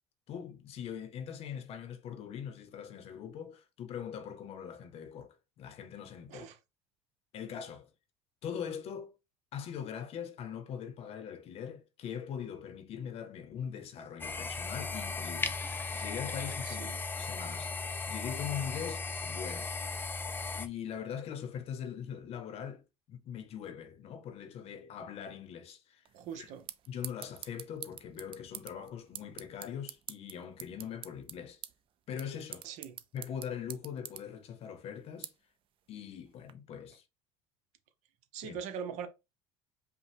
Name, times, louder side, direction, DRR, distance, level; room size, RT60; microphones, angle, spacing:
voice 1, 0.3-6.5 7.3-7.9 8.4-9.1 9.5-15.6 15.9-17.7 18.1-19.7 20.6-26.0 26.3-26.5 26.9-31.6 32.1-32.7 33.1-35.3 35.9-37.0 38.4-38.6, left 8 dB, 50° left, 0.7 m, -41 dB
sound 1, 14.2-20.7, left 3 dB, 15° left, 0.4 m, -37 dB
voice 2, 16.6-17.0 26.1-26.6 32.6-33.0 38.3-39.1, right 7 dB, 65° right, 0.8 m, -41 dB
sound 2, 26.1-36.5, right 11 dB, 45° right, 0.4 m, -49 dB
5.3 x 2.2 x 3.3 m
supercardioid pair, 115°, 13 cm